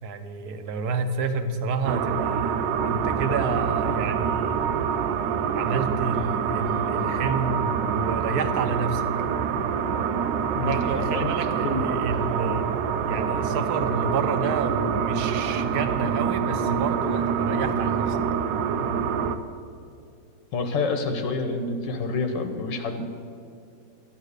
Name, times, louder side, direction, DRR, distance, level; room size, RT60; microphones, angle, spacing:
voice 1, 0.0-2.6 2.8-4.7 5.5-9.0 10.6-12.7 13.0-18.2, right 4 dB, 65° right, 8 dB, 1.3 m, -29 dB
sound 1, 1.9-19.4, right 7 dB, 85° right, 1.3 m, -26 dB
voice 2, 10.5-11.3 11.6-11.8 20.5-23.1, left 3 dB, 80° left, 6 dB, 1.6 m, -28 dB
13.0 x 9.9 x 6.6 m, 2.4 s
omnidirectional pair, 2.0 m